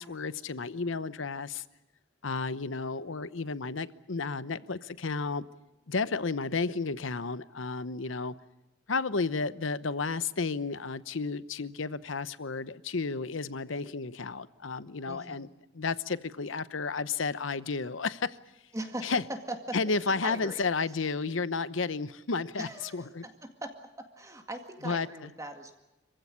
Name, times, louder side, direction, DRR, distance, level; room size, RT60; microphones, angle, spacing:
voice 1, 0.0-1.6 2.2-5.4 5.9-8.3 8.9-15.5 15.7-18.4 19.0-19.2 19.7-23.2 24.8-25.3, left 4 dB, 80° left, 0.9 m, -32 dB
voice 2, 15.1-15.5 18.7-19.8 20.0-20.6 22.6-23.7 24.0-25.8, right 1 dB, 15° right, 2.0 m, -40 dB
26.5 x 15.5 x 9.9 m
head